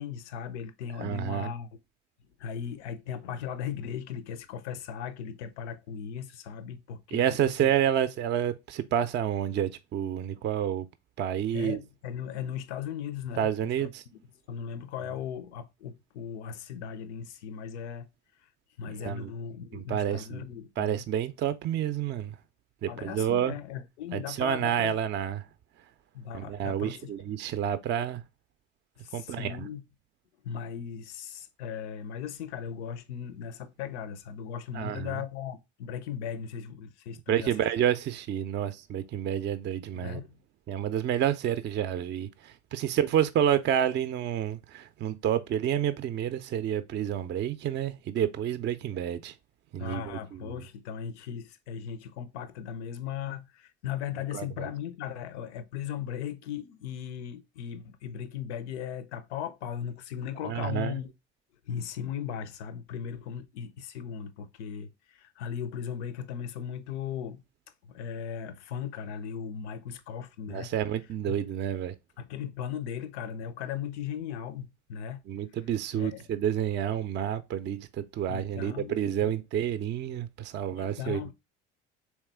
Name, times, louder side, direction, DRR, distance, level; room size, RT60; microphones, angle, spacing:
voice 1, 0.0-1.7 2.4-7.7 11.5-13.9 14.5-18.1 18.8-21.0 22.9-25.0 26.1-27.4 29.0-29.8 30.4-37.7 39.9-40.4 41.1-41.2 49.8-61.1 61.7-67.4 67.9-70.7 71.3-71.4 72.2-75.2 75.9-76.3 78.3-79.4 80.7-81.3, left 8 dB, 75° left, 0.6 m, -37 dB
voice 2, 1.0-1.5 7.1-10.9 11.2-11.8 13.4-14.0 19.0-19.3 19.7-20.4 20.8-22.3 22.8-23.6 24.1-25.4 26.3-28.2 29.1-29.7 34.7-35.2 37.3-40.2 40.7-49.3 49.7-50.6 54.3-54.7 60.4-60.9 70.5-71.9 75.3-81.3, right 10 dB, 35° right, 0.4 m, -29 dB
3.5 x 3.1 x 3.3 m
hypercardioid pair, 60°, 34 cm